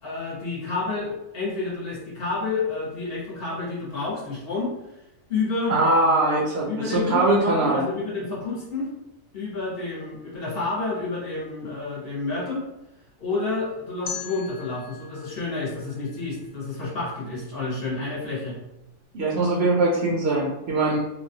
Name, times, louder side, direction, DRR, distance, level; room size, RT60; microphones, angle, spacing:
voice 1, 0.0-4.7 5.3-5.7 6.7-8.9 9.3-12.6 13.2-18.6, left 3 dB, 50° left, -5 dB, 0.9 m, -29 dB
voice 2, 5.7-7.8 19.1-21.0, right 2 dB, 65° right, -3 dB, 0.7 m, -21 dB
sound 1, 14.1-17.0, left 7 dB, 80° left, 1.0 m, -40 dB
3.2 x 2.2 x 2.7 m, 0.90 s
omnidirectional pair, 1.4 m